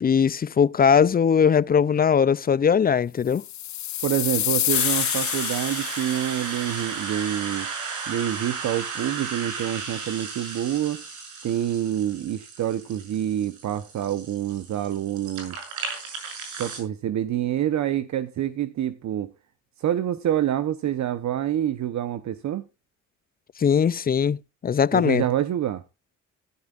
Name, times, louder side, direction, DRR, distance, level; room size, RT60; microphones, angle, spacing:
voice 1, 0.0-3.4 23.6-24.4 24.6-25.2, left 7 dB, 30° left, 0.5 m, -20 dB
sound 1, 3.4-6.6, left 13 dB, 65° left, 0.9 m, -27 dB
voice 2, 4.0-7.7 8.1-11.0 11.4-15.6 16.6-19.3 19.8-22.6 24.9-25.8, right 11 dB, 65° right, 1.0 m, -27 dB
sound 2, 4.7-16.8, right 5 dB, 85° right, 6.6 m, -35 dB
15.5 x 12.5 x 2.5 m
cardioid pair, 90°, 30 cm